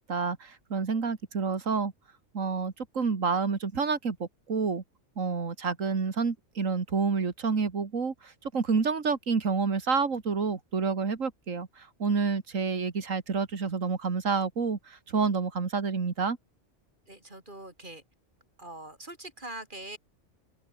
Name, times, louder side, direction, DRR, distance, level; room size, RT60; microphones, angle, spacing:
voice 1, 0.1-1.9 2.3-4.8 5.2-16.4, right 5 dB, 80° right, 2.5 m, -29 dB
voice 2, 17.1-18.0 18.6-20.0, right 1 dB, 40° right, 5.9 m, -43 dB
omnidirectional pair, 1.3 m